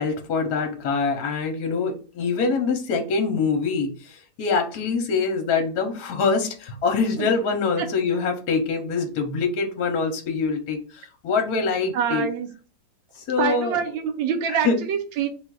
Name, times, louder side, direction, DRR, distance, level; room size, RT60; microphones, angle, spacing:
voice 1, 0.0-12.3 13.2-13.8 14.5-14.8, left 4 dB, 60° left, 1.1 m, -24 dB
voice 2, 11.9-12.5 13.4-15.3, right 7 dB, 90° right, 1.4 m, -25 dB
3.8 x 2.4 x 4.6 m
omnidirectional pair, 2.0 m